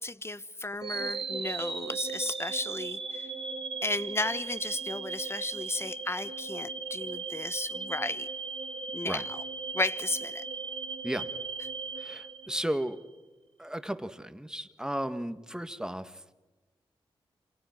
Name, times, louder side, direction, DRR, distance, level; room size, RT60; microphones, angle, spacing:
voice 1, 0.0-3.3 3.8-8.3 8.9-9.4 9.7-10.4, left 2 dB, 25° left, 15 dB, 1.2 m, -34 dB
sound 1, 0.8-12.9, right 4 dB, 60° right, 1.7 m, -37 dB
voice 2, 12.0-13.0 13.6-16.2, right 1 dB, 5° right, 10 dB, 1.9 m, -34 dB
28.0 x 26.5 x 6.1 m, 1.2 s
supercardioid pair, 40°, 10 cm